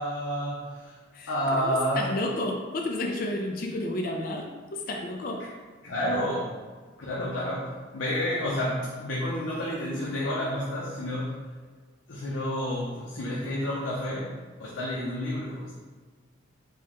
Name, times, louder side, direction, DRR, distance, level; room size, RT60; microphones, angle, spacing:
voice 1, 0.0-0.9 1.3-2.1 5.8-6.5 7.0-11.3 12.1-14.3 14.6-15.8, equal, 90° left, -5 dB, 0.6 m, -30 dB
voice 2, 1.1-5.5, left 1 dB, 45° left, 1 dB, 0.4 m, -31 dB
4.4 x 2.2 x 2.9 m, 1.4 s
head